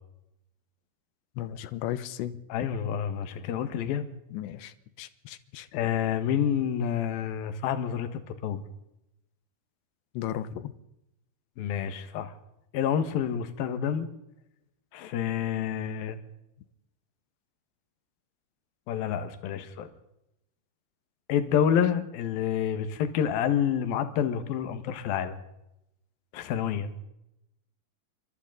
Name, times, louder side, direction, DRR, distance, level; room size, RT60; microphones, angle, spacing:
voice 1, 1.4-2.4 4.3-5.7 10.1-10.7, left 11 dB, 80° left, 13 dB, 3.2 m, -35 dB
voice 2, 2.5-4.1 5.7-8.6 11.6-12.3 12.7-14.1 14.9-16.2 18.9-19.9 21.3-25.4 26.3-26.9, left 8 dB, 65° left, 9 dB, 3.1 m, -28 dB
26.5 x 25.0 x 4.0 m, 0.86 s
omnidirectional pair, 5.2 m